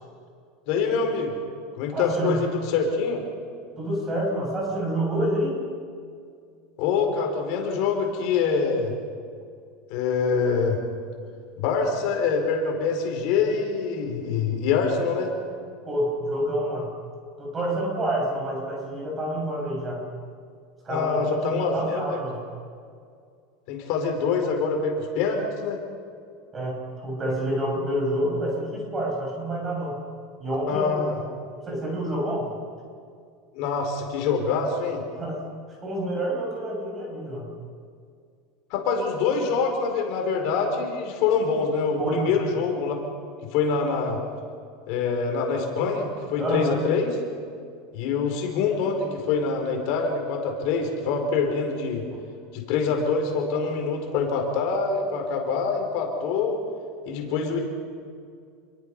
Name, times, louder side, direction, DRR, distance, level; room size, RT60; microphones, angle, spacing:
voice 1, 0.7-1.3 1.7-3.2 6.8-8.9 9.9-10.8 11.6-15.3 20.9-22.2 23.7-25.8 30.7-31.2 33.5-35.0 38.7-43.0 43.5-44.2 44.9-47.1 47.9-52.0 52.5-56.6 57.0-57.6, left 5 dB, 55° left, 2 dB, 4.7 m, -25 dB
voice 2, 1.9-2.4 3.8-5.6 15.9-16.9 17.4-20.0 20.8-22.4 26.5-30.0 30.4-31.0 31.5-32.5 35.1-35.4 35.8-37.5 42.0-42.3 46.4-46.8, right 1 dB, 20° right, -1 dB, 7.4 m, -28 dB
28.5 x 22.5 x 5.5 m, 2.2 s
supercardioid pair, 155°, 0 cm